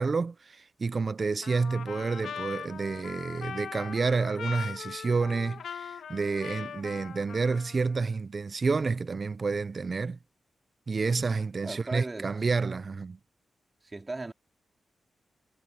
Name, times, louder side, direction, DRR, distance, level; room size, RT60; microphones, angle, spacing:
voice 1, 0.0-10.2 10.9-13.2, right 4 dB, 40° right, 0.6 m, -29 dB
Trumpet, 1.4-8.0, left 7 dB, 90° left, 2.3 m, -41 dB
voice 2, 11.6-12.3 13.8-14.3, right 2 dB, 25° right, 2.8 m, -37 dB
cardioid pair, 90°, 0 cm